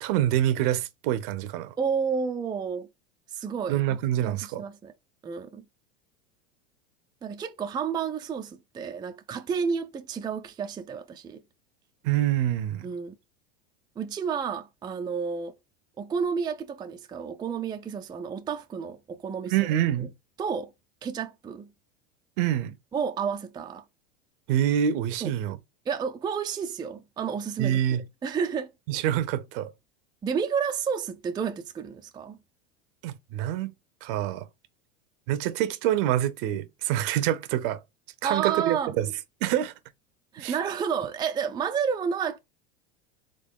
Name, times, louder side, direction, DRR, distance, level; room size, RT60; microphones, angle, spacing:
voice 1, 0.0-1.7 3.7-4.6 12.0-12.9 19.5-20.1 22.4-22.8 24.5-25.6 27.6-28.0 28.9-29.7 33.0-33.7 34.0-34.5 35.3-37.8 38.2-39.1 39.4-39.7 40.4-40.6, right 11 dB, 60° right, 0.7 m, -26 dB
voice 2, 1.8-2.9 3.3-3.8 4.2-4.9 5.2-5.6 7.2-11.4 12.8-13.2 14.0-15.5 16.0-19.5 20.4-20.7 21.0-21.7 22.9-23.8 25.2-25.6 25.9-28.7 30.2-32.4 38.2-38.9 40.3-42.4, right 6 dB, 15° right, 0.4 m, -31 dB
3.8 x 3.4 x 3.6 m
hypercardioid pair, 100°, 32 cm